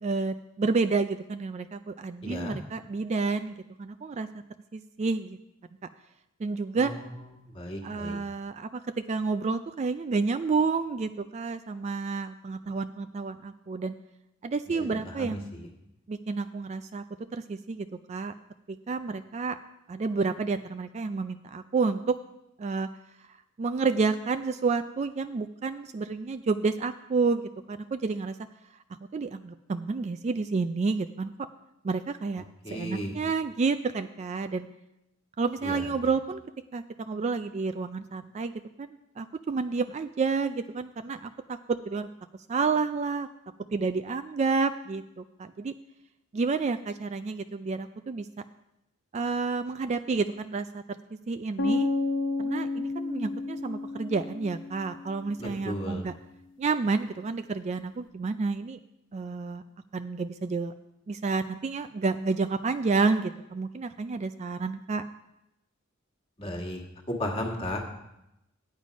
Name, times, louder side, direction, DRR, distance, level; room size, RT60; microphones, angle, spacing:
voice 1, 0.0-4.3 4.7-5.4 6.4-6.9 7.8-8.8 9.1-13.9 14.4-15.4 16.1-17.0 17.3-18.3 18.7-19.6 19.9-22.2 22.6-22.9 23.6-28.4 29.1-31.3 31.8-34.7 35.4-36.4 36.7-38.5 38.8-38.9 39.2-42.1 42.5-43.3 43.7-45.7 46.3-48.3 49.1-50.8 51.3-51.9 52.4-56.1 56.6-58.8 59.1-59.6 59.9-60.7 61.1-65.0, right 4 dB, 35° right, 10 dB, 0.3 m, -30 dB
voice 2, 2.2-2.6 6.8-6.9 7.5-8.2 15.2-15.4 32.6-33.2 35.6-35.8 55.4-56.0 66.4-66.8 67.1-67.8, left 1 dB, 25° left, 1 dB, 1.6 m, -34 dB
sound 1, 51.6-55.5, left 3 dB, 60° left, 0.8 m, -31 dB
9.2 x 8.9 x 5.1 m, 0.88 s
head